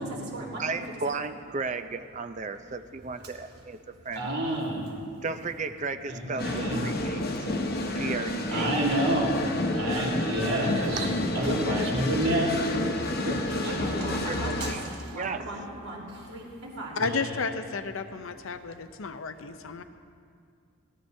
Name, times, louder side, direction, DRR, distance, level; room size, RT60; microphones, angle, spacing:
voice 1, 0.0-0.6 4.1-4.8 6.1-6.8 8.5-9.4 9.7-11.1 11.3-12.6 13.3-17.1, right 1 dB, 80° right, -4 dB, 3.6 m, -30 dB
voice 2, 0.6-3.8 4.0-4.2 5.2-7.3 7.9-8.7 10.6-11.1 14.3-14.8 15.1-15.5, right 4 dB, 30° right, 9 dB, 0.5 m, -34 dB
sound 1, 6.4-14.7, left 1 dB, 45° left, 1.0 m, -30 dB
voice 3, 16.9-19.8, left 4 dB, 65° left, 9 dB, 0.6 m, -32 dB
21.0 x 14.0 x 2.7 m, 2.3 s
head